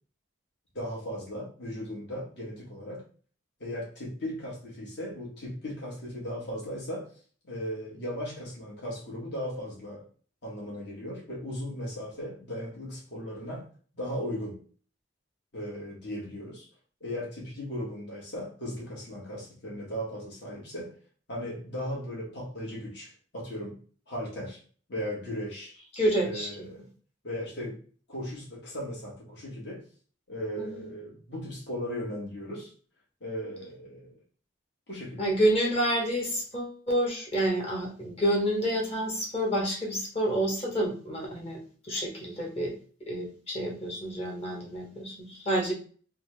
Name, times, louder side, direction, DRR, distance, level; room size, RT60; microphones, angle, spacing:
voice 1, 0.7-3.0 3.6-7.1 7.4-10.1 10.4-13.7 14.0-14.6 15.5-16.6 17.0-20.9 21.3-23.7 24.1-24.6 24.9-25.7 26.2-26.9 27.2-27.8 28.1-29.8 30.3-32.7 33.2-34.2 34.9-35.2, equal, 60° left, -4 dB, 1.8 m, -37 dB
voice 2, 26.0-26.5 30.6-30.8 35.2-41.6 41.8-42.7 43.1-45.7, right 1 dB, 35° left, -1 dB, 1.1 m, -28 dB
3.8 x 2.5 x 3.3 m, 0.41 s
head